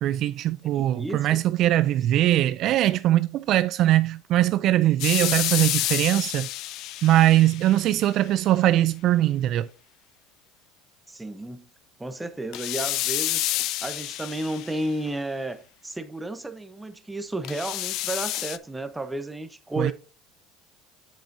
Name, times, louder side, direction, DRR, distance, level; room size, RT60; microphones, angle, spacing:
voice 1, 0.0-6.5 7.0-9.7 19.8-19.9, right 14 dB, 55° right, 0.3 m, -21 dB
voice 2, 0.6-1.4 11.1-11.7 12.0-13.5 13.8-19.9, right 1 dB, 10° right, 0.8 m, -32 dB
sound 1, 5.0-8.1 12.5-15.1 17.4-18.6, left 16 dB, 60° left, 0.4 m, -29 dB
7.4 x 7.4 x 2.6 m
supercardioid pair, 115°, 0 cm